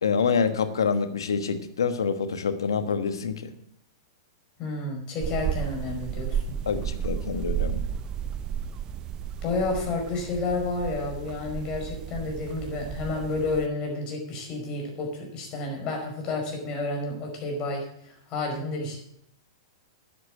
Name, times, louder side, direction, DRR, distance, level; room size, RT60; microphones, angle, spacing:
voice 1, 0.0-3.5 6.7-7.9, left 6 dB, 80° left, 10 dB, 1.3 m, -26 dB
voice 2, 4.6-6.6 9.4-19.0, left 3 dB, 35° left, 1 dB, 5.1 m, -30 dB
sound 1, 5.2-13.7, right 9 dB, 30° right, 0.6 m, -33 dB
9.6 x 8.4 x 7.6 m, 0.69 s
hypercardioid pair, 110°, 2 cm